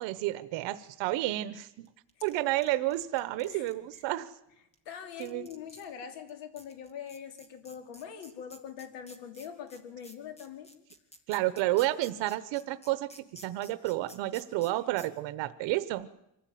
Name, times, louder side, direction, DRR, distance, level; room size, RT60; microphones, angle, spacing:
voice 1, 0.0-1.9 2.2-4.4 5.2-5.5 11.3-16.1, right 16 dB, 90° right, 12 dB, 1.0 m, -31 dB
sound 1, 1.8-4.0 4.7-4.8 5.2-5.9 6.3-6.4 6.6-14.7 15.0-15.1, equal, 15° left, 2.3 m, -52 dB
voice 2, 4.8-10.7, left 8 dB, 85° left, 7 dB, 3.2 m, -43 dB
25.5 x 15.5 x 9.3 m, 0.86 s
cardioid pair, 155°, 42 cm